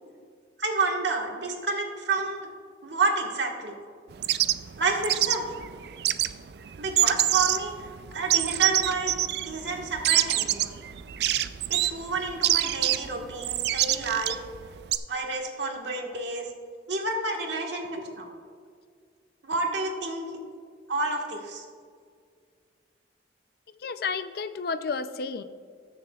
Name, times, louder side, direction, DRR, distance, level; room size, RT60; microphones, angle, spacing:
voice 1, 0.6-2.5 2.8-3.8 4.8-5.6 6.8-9.2 9.4-10.7 11.7-14.4 15.1-16.5 16.9-18.3 19.4-20.3 20.9-21.6, right 3 dB, 75° right, 1 dB, 1.5 m, -29 dB
sound 1, 4.1-15.0, right 13 dB, 60° right, 0.3 m, -26 dB
voice 2, 23.8-25.4, left 5 dB, 55° left, 11 dB, 0.4 m, -31 dB
20.0 x 6.7 x 2.3 m, 2.1 s
head